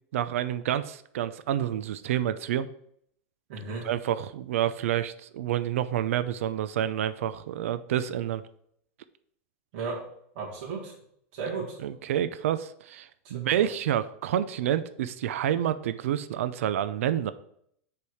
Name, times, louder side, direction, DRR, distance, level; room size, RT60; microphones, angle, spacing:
voice 1, 0.1-2.7 3.8-8.4 11.8-17.3, right 11 dB, 85° right, 13 dB, 0.4 m, -28 dB
voice 2, 3.5-3.9 9.7-10.1 10.3-10.9 11.3-11.8 13.2-13.7, right 4 dB, 45° right, -5 dB, 1.6 m, -35 dB
6.9 x 3.4 x 4.8 m, 0.69 s
supercardioid pair, 175°, 7 cm